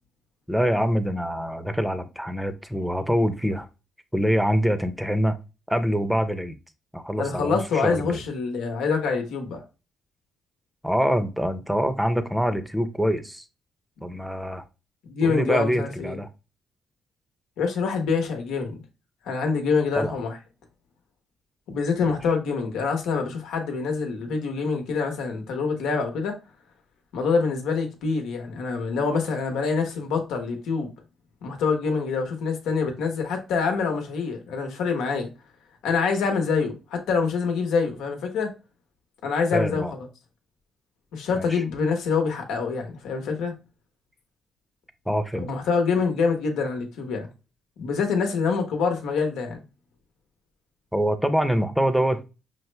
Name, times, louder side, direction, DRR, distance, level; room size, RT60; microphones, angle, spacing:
voice 1, 0.5-3.7 4.1-5.4 5.7-6.6 6.9-8.2 10.8-13.4 14.0-14.6 15.2-16.3 19.9-20.2 22.0-22.2 39.5-39.9 41.4-41.6 45.1-45.5 50.9-52.2, equal, 5° right, 0.6 m, -25 dB
voice 2, 7.2-9.6 14.0-14.1 15.1-16.2 17.6-18.7 19.3-20.4 21.7-26.4 27.1-30.9 31.4-35.3 35.8-38.5 39.2-39.8 41.1-43.5 45.3-47.3 47.8-49.6, left 5 dB, 85° left, 1.0 m, -25 dB
5.6 x 2.1 x 3.3 m
cardioid pair, 90°, 0 cm